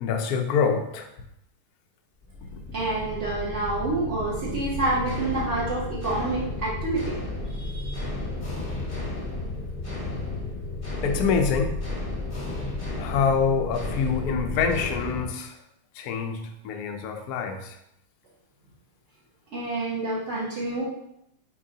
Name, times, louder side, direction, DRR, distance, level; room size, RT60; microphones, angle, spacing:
voice 1, 0.0-1.1 2.5-2.6 11.0-11.7 13.0-15.5 16.0-17.7, left 6 dB, 65° left, 4 dB, 0.9 m, -26 dB
sound 1, 2.2-15.2, left 2 dB, 25° left, 0.7 m, -33 dB
voice 2, 2.7-8.1 19.5-20.8, right 2 dB, 45° right, -7 dB, 1.0 m, -28 dB
7.3 x 4.7 x 2.8 m, 0.81 s
omnidirectional pair, 2.4 m